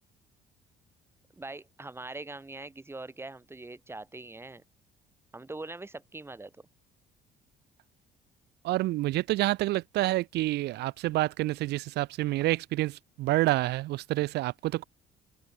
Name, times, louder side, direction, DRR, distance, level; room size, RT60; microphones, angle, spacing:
voice 1, 1.3-4.6 5.3-6.5, right 2 dB, 15° right, 7.9 m, -42 dB
voice 2, 8.6-12.9 13.2-14.8, right 17 dB, 80° right, 3.0 m, -28 dB
open air
cardioid pair, 110°, 17 cm